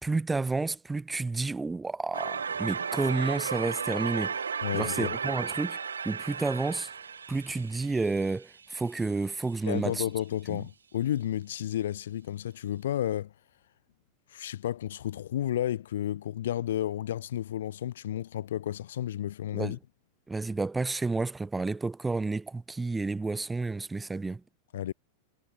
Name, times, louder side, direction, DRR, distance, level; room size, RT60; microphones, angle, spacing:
voice 1, 0.0-4.4 4.7-5.8 6.0-6.9 7.3-10.0 10.5-10.6 19.5-19.8 20.3-24.4, right 3 dB, 10° right, 0.6 m, -30 dB
sound 1, 2.1-9.0, right 6 dB, 70° right, 0.3 m, -34 dB
voice 2, 4.6-5.2 9.7-13.3 14.3-19.8 24.7-24.9, left 11 dB, 60° left, 0.4 m, -32 dB
figure-of-eight pair, 90°, 0 cm